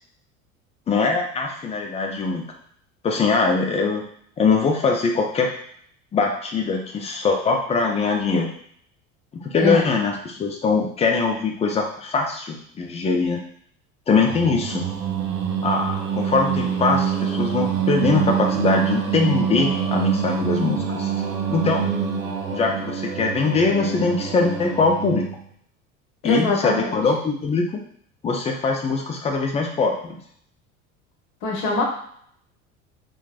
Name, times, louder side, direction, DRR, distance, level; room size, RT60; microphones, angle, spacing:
voice 1, 0.9-2.4 3.0-4.0 4.4-5.5 6.1-8.5 9.4-13.4 14.1-14.9 15.6-21.1 21.5-21.9 22.5-25.2 26.2-27.8 28.2-30.2, left 4 dB, 15° left, 2 dB, 0.4 m, -22 dB
Singing, 14.3-25.4, right 8 dB, 80° right, 0.6 m, -25 dB
voice 2, 26.2-27.0 31.4-31.8, left 3 dB, 55° left, -1 dB, 1.0 m, -22 dB
3.1 x 2.2 x 2.4 m, 0.65 s
figure-of-eight pair, 65°, 41 cm